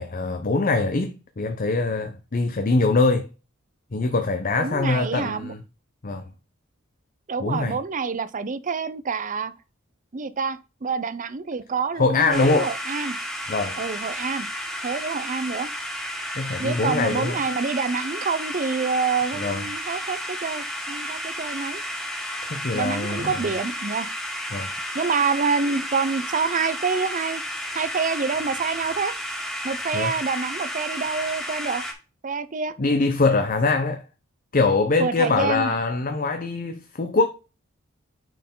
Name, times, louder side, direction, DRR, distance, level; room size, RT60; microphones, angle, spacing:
voice 1, 0.0-3.3 3.9-5.6 6.0-6.3 7.4-7.8 12.0-12.7 13.5-13.8 16.4-17.4 19.4-19.7 22.5-23.4 24.5-24.7 29.9-30.1 32.8-34.0 34.5-37.3, left 3 dB, 45° left, 0.7 m, -23 dB
voice 2, 4.5-5.5 7.3-9.5 10.1-13.1 13.8-14.5 14.8-15.7 16.6-21.8 22.7-24.1 24.9-27.4 27.7-29.1 29.6-31.8 32.2-32.7 35.0-35.8, right 5 dB, 40° right, 0.6 m, -27 dB
sound 1, 12.3-31.9, equal, 5° left, 2.1 m, -32 dB
9.2 x 4.6 x 3.7 m
head